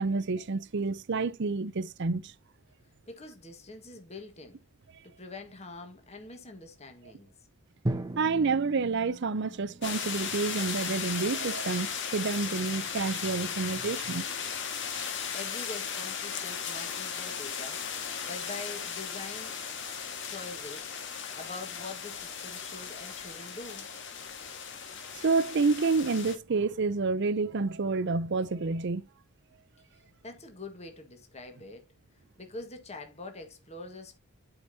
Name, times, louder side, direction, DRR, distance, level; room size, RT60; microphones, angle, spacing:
voice 1, 0.0-2.3 8.2-14.2 25.2-29.0, right 4 dB, 55° right, 0.6 m, -29 dB
voice 2, 3.1-4.6 5.0-7.3 15.0-19.6 20.3-20.9 21.3-23.9 29.9-31.9 32.4-34.2, left 3 dB, 30° left, 1.6 m, -44 dB
Drum, 7.9-11.9, right 1 dB, 20° right, 0.9 m, -38 dB
sound 1, 9.8-26.4, left 7 dB, 60° left, 1.7 m, -36 dB
12.5 x 5.1 x 2.7 m
head